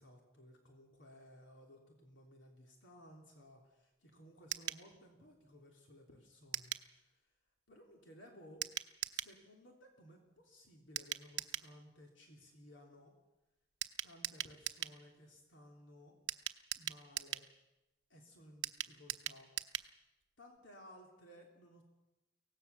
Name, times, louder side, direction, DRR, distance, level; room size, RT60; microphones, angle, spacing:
voice 1, 0.0-7.2 7.7-8.6 9.1-13.1 14.0-16.1 16.8-17.4 18.1-19.5 20.4-21.8, equal, 80° left, 1 dB, 3.2 m, -59 dB
sound 1, 4.5-4.8 6.5-6.9 8.6-9.3 11.0-11.7 13.8-15.0 16.3-17.5 18.6-19.9 20.2-20.3 20.6-20.7, right 12 dB, 70° right, 0.9 m, -41 dB
23.5 x 17.5 x 7.0 m, 1.0 s
head